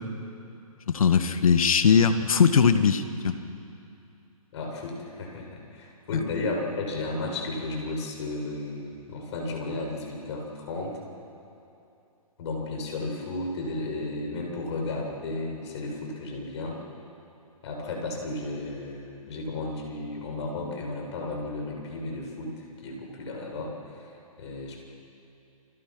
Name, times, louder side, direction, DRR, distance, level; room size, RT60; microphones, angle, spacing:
voice 1, 0.9-3.3, left 6 dB, 65° left, 9 dB, 1.8 m, -20 dB
voice 2, 4.5-11.0 12.4-16.8 17.6-24.1 24.4-24.8, left 2 dB, 50° left, 1 dB, 7.4 m, -34 dB
29.5 x 25.0 x 6.2 m, 2.7 s
hypercardioid pair, 135°, 19 cm